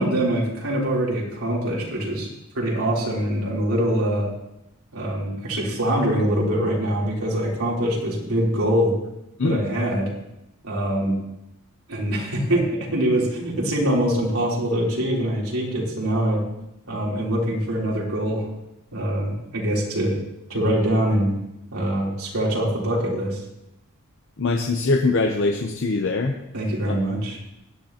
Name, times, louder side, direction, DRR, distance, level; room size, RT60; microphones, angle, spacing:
voice 1, 0.0-2.3 2.5-4.3 4.9-8.9 9.4-10.1 10.6-11.2 11.9-16.4 16.9-18.5 18.9-20.2 20.5-21.3 21.7-23.4 26.5-27.4, right 1 dB, 80° right, -3 dB, 3.5 m, -23 dB
voice 2, 24.4-26.4 26.8-26.9, left 3 dB, 60° left, 3 dB, 0.8 m, -22 dB
16.5 x 11.0 x 2.9 m, 0.88 s
head